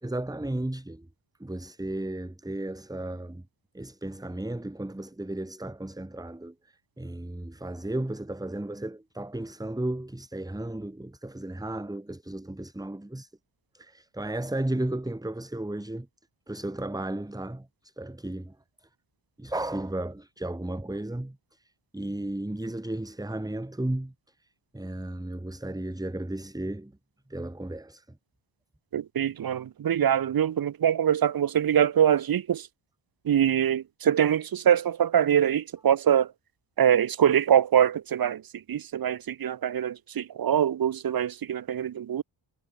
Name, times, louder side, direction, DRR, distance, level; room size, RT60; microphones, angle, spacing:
voice 1, 0.0-1.1 1.4-3.4 3.7-13.3 13.7-16.1 16.5-18.6 19.4-24.1 24.7-26.9 27.3-28.2, right 1 dB, 5° right, 1.8 m, -34 dB
voice 2, 28.9-32.7 33.3-36.3 36.8-38.4 38.7-42.2, right 9 dB, 45° right, 0.6 m, -24 dB
wide cardioid pair, 105°, 50 cm